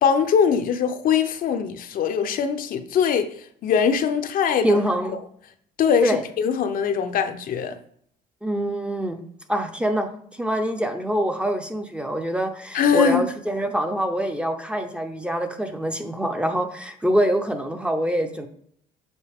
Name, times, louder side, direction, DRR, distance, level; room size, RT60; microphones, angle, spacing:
voice 1, 0.0-3.3 3.6-4.8 5.8-7.8 12.7-13.2, left 7 dB, 55° left, 0.6 m, -21 dB
voice 2, 4.6-5.2 6.0-6.2 8.4-9.2 9.5-18.5, equal, 5° right, 0.6 m, -25 dB
7.1 x 3.9 x 3.5 m
cardioid pair, 110°, 17 cm